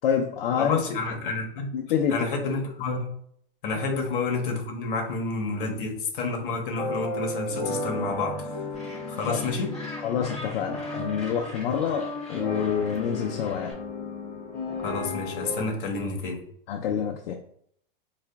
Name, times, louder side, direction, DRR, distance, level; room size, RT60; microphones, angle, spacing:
voice 1, 0.0-0.8 1.7-2.5 3.9-4.0 9.2-9.4 10.0-13.8 16.7-17.4, left 8 dB, 75° left, 2 dB, 0.5 m, -27 dB
voice 2, 0.6-1.8 2.1-3.1 3.6-8.6 9.1-9.7 14.8-16.4, left 3 dB, 60° left, 3 dB, 1.0 m, -29 dB
sound 1, 6.8-15.7, left 2 dB, 25° left, 0.6 m, -34 dB
Gull seagull, 8.7-13.7, left 1 dB, ahead, 1.2 m, -43 dB
4.7 x 2.4 x 2.2 m, 0.67 s
supercardioid pair, 155°, 29 cm